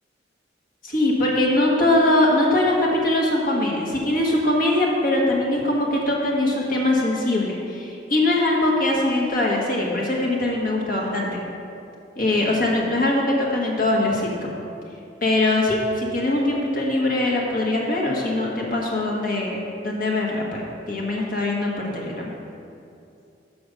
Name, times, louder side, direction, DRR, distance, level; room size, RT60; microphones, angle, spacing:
voice 1, 0.8-11.4 12.2-14.6 15.2-22.3, left 1 dB, 50° left, -2 dB, 1.4 m, -22 dB
6.2 x 6.1 x 6.5 m, 2.6 s
head